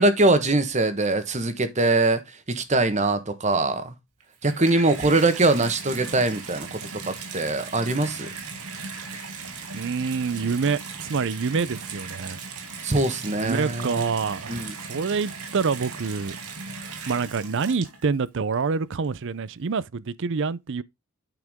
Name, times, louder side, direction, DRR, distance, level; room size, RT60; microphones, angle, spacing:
voice 1, 0.0-3.9 4.4-8.3 12.8-14.1 14.5-14.7, right 2 dB, 30° right, 1.3 m, -22 dB
Water tap faucet / Bathtub (filling or washing), 4.2-18.3 19.0-19.1, right 4 dB, 85° right, 2.5 m, -37 dB
voice 2, 9.7-12.4 13.3-16.4 17.1-20.8, right 5 dB, 55° right, 0.5 m, -27 dB
9.1 x 5.9 x 3.6 m
head